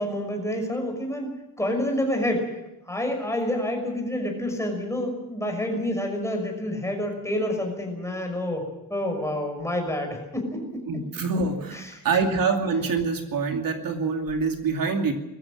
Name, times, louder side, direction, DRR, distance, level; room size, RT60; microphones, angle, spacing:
voice 1, 0.0-2.5 2.9-10.8 11.7-12.0, left 1 dB, 10° left, 3 dB, 5.9 m, -28 dB
voice 2, 10.9-15.1, right 4 dB, 70° right, 4 dB, 2.6 m, -25 dB
21.5 x 15.0 x 8.8 m, 0.94 s
wide cardioid pair, 130°, 36 cm